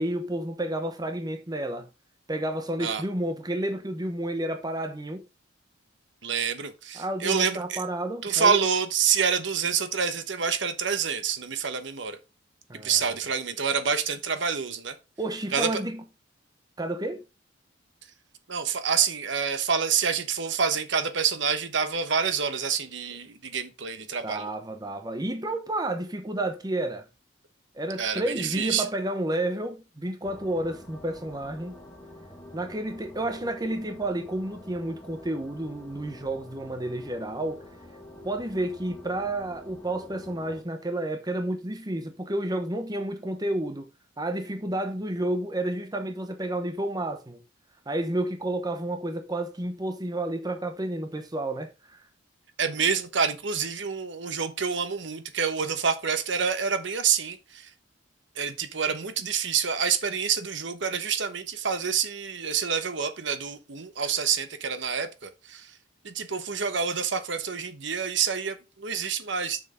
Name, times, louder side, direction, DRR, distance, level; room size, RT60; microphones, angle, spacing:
voice 1, 0.0-1.9 2.3-5.3 6.9-8.7 12.7-13.2 15.2-16.0 16.8-17.2 24.2-27.1 27.7-31.8 32.5-37.6 38.2-43.9 44.2-47.4 47.9-52.0, right 1 dB, 20° right, 0.9 m, -31 dB
voice 2, 6.2-7.8 8.2-12.2 12.8-14.9 15.5-15.8 18.5-24.5 28.0-28.8 52.6-57.7 58.4-65.7 66.0-69.6, right 6 dB, 65° right, 1.1 m, -27 dB
sound 1, 30.2-40.6, left 1 dB, 10° left, 1.7 m, -47 dB
6.7 x 6.4 x 5.1 m
head